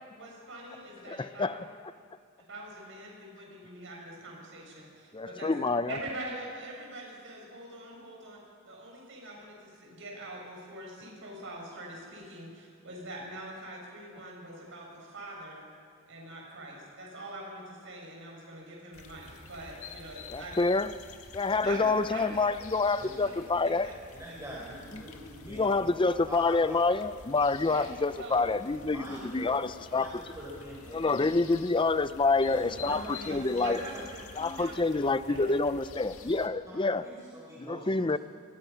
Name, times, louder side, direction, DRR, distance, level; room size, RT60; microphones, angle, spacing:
voice 1, 0.1-1.6 2.5-8.4 8.6-15.7 16.1-20.6 21.6-22.5 22.8-24.0 27.6-28.4 32.3-32.5 32.8-33.0 33.3-33.4 33.6-35.0 35.3-35.5, right 1 dB, 65° right, -2 dB, 7.0 m, -44 dB
voice 2, 5.1-6.0 20.3-20.9 21.3-23.9 24.9-25.0 25.4-30.1 30.9-33.8 34.4-37.1 37.6-38.2, left 3 dB, 25° left, 14 dB, 0.6 m, -27 dB
sound 1, 18.9-36.5, left 4 dB, 80° left, 1.8 m, -49 dB
voice 3, 22.9-23.3 24.1-25.9 26.3-26.8 27.7-27.9 28.3-29.5 29.9-31.4 32.5-33.8 36.7-38.1, equal, 15° right, -5 dB, 4.4 m, -44 dB
25.5 x 21.0 x 5.8 m, 2.2 s
head